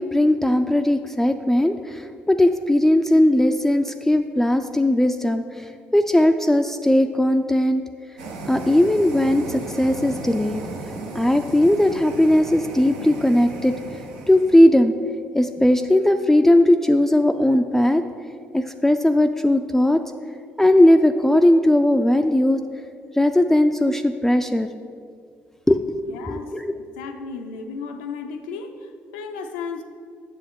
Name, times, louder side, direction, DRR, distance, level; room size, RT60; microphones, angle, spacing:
voice 1, 0.0-7.8 8.5-10.6 11.1-13.8 14.3-14.9 15.3-18.0 18.5-20.0 20.6-22.6 23.1-24.7 25.7-26.0 26.3-26.8, left 1 dB, 5° left, 6 dB, 0.3 m, -18 dB
sound 1, 8.2-14.7, right 3 dB, 85° right, 0.8 m, -35 dB
voice 2, 26.1-26.5 27.0-29.8, left 5 dB, 90° left, 5 dB, 0.5 m, -34 dB
7.6 x 6.7 x 3.6 m, 2.2 s
hypercardioid pair, 60°, 5 cm